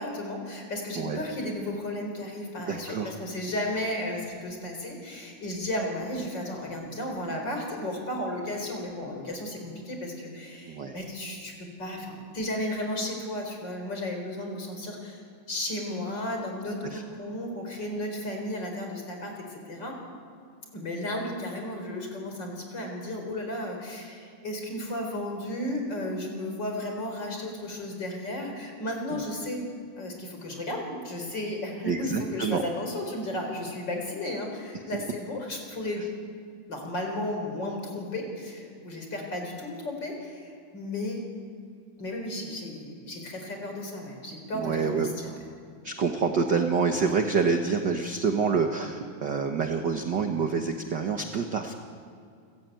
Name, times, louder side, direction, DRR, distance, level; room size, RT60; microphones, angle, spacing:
voice 1, 0.0-15.2 15.5-20.0 20.7-29.7 30.0-36.1 36.7-41.3 42.0-45.4, left 1 dB, 35° left, 2 dB, 4.8 m, -34 dB
voice 2, 2.7-3.1 10.7-11.0 16.8-17.0 29.1-29.2 31.8-32.6 34.9-35.0 44.5-45.1 45.8-51.7, right 5 dB, 50° right, 4 dB, 1.4 m, -27 dB
29.5 x 14.5 x 9.2 m, 2.2 s
omnidirectional pair, 3.3 m